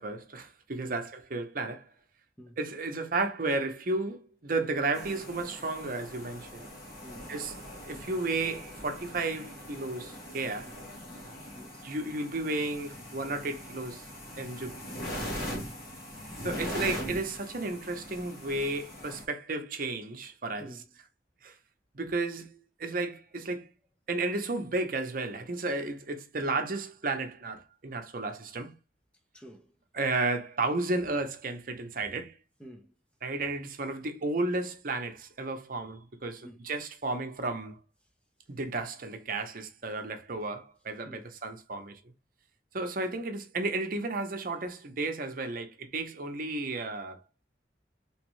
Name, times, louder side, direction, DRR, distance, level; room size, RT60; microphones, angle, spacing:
voice 1, 0.0-1.9 2.6-6.7 7.3-7.5 7.8-10.7 11.8-14.1 14.4-14.8 16.4-20.7 21.4-21.6 21.9-23.7 24.1-28.8 29.9-32.4 33.2-37.8 38.5-42.0 42.7-47.2, right 3 dB, 50° right, 0.8 m, -33 dB
sound 1, 4.9-19.2, equal, 55° left, 1.4 m, -41 dB
voice 2, 7.0-7.4 10.7-10.8 11.5-11.9 15.5-15.8 20.6-20.9 29.3-29.8 32.6-32.9 36.4-36.7 41.1-41.3, equal, 5° left, 0.6 m, -49 dB
3.5 x 3.2 x 3.1 m
head